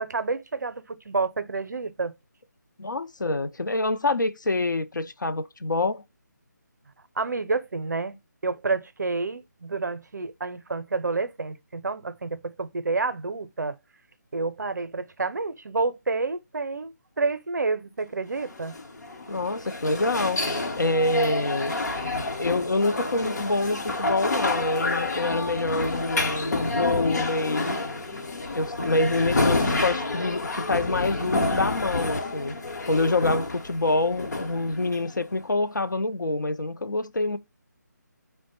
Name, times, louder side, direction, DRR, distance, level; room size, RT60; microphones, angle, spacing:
voice 1, 0.0-2.1 7.2-8.2 8.4-13.8 14.3-18.7, right 3 dB, 70° right, 0.5 m, -29 dB
voice 2, 2.8-6.0 19.3-20.4 20.8-21.8 22.4-27.7 28.5-32.6 32.9-37.4, left 2 dB, 80° left, 0.5 m, -26 dB
sound 1, 18.4-35.4, left 2 dB, 65° left, 0.9 m, -29 dB
4.5 x 2.1 x 4.0 m
figure-of-eight pair, 150°, 10 cm